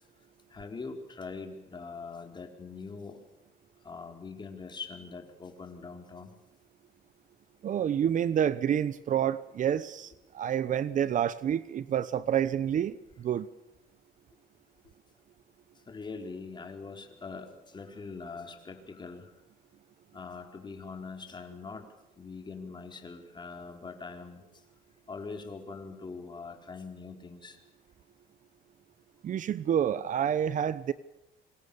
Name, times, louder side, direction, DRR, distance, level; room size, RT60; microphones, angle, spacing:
voice 1, 0.5-3.2 3.8-6.3 15.9-19.3 20.1-21.8 22.2-24.4 25.1-27.6, left 4 dB, 25° left, 3 dB, 4.4 m, -42 dB
voice 2, 7.6-13.5 29.2-30.9, right 9 dB, 50° right, 16 dB, 0.9 m, -28 dB
27.0 x 25.0 x 7.1 m, 0.90 s
cardioid pair, 110°, 17 cm